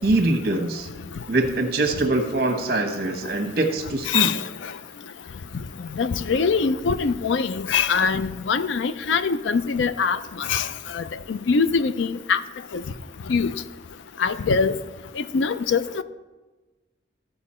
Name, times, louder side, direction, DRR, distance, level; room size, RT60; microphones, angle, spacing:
voice 1, 0.0-0.9 1.3-4.3, right 2 dB, 50° right, 1.2 m, -23 dB
voice 2, 4.1-4.4 6.0-10.7 10.9-11.0 11.3-12.4 13.3-13.5 14.2-14.7 15.3-16.0, left 5 dB, 75° left, 0.4 m, -23 dB
14.5 x 5.1 x 4.3 m
head